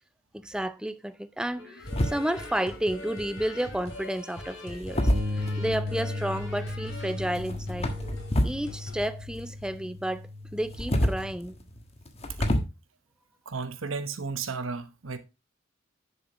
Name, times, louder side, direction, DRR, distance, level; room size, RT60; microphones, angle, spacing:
voice 1, 0.3-7.9 8.4-11.6, right 1 dB, 5° right, 0.4 m, -31 dB
sound 1, 1.6-9.0, left 1 dB, 70° left, 2.9 m, -42 dB
sound 2, 1.8-2.6 3.6-4.0 4.7-5.8 7.3-8.7 8.9-9.8 10.6-12.6, equal, 30° left, 1.3 m, -28 dB
sound 3, 5.1-11.3, left 2 dB, 50° right, 1.2 m, -36 dB
voice 2, 13.4-15.2, right 4 dB, 85° right, 1.0 m, -34 dB
10.0 x 7.2 x 3.0 m
head